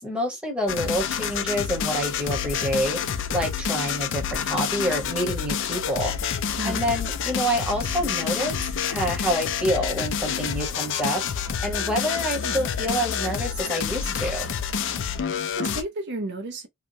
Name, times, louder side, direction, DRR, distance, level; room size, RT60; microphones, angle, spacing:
voice 1, 0.0-6.1 6.6-14.5, equal, 5° right, 0.9 m, -27 dB
sound 1, 0.7-15.8, left 7 dB, 55° left, 0.4 m, -28 dB
voice 2, 15.3-16.7, right 2 dB, 50° right, 0.6 m, -33 dB
2.9 x 2.1 x 2.6 m
head